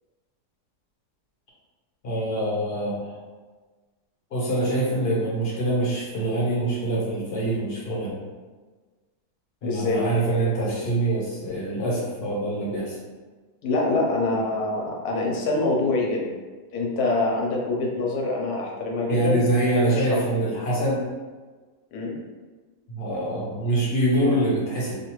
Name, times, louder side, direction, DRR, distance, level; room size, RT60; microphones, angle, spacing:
voice 1, 2.0-3.1 4.3-8.2 9.6-13.0 19.1-21.0 22.9-25.0, right 1 dB, 45° left, -5 dB, 1.0 m, -25 dB
voice 2, 9.6-10.0 13.6-16.3 16.7-19.4 19.9-20.2 21.9-22.1, left 2 dB, 75° left, -2 dB, 1.2 m, -25 dB
2.7 x 2.5 x 3.0 m, 1.4 s
omnidirectional pair, 1.7 m